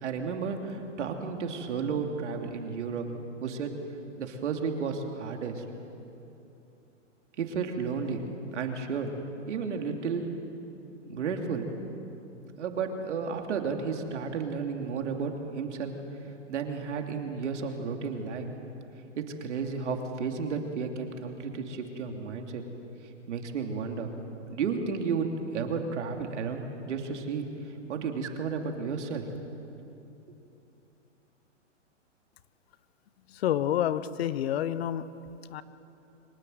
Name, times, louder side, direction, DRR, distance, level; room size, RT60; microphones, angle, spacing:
voice 1, 0.0-3.0 3.4-3.7 4.2-5.6 7.4-8.2 8.5-9.1 9.4-10.3 11.1-11.7 12.6-15.9 16.5-18.5 19.2-22.6 23.3-24.1 24.5-27.5 27.9-29.2, right 5 dB, 70° right, 3 dB, 3.0 m, -32 dB
voice 2, 33.3-35.0 35.5-35.6, left 11 dB, 55° left, 15 dB, 1.0 m, -28 dB
24.5 x 18.5 x 8.0 m, 2.9 s
hypercardioid pair, 150°, 37 cm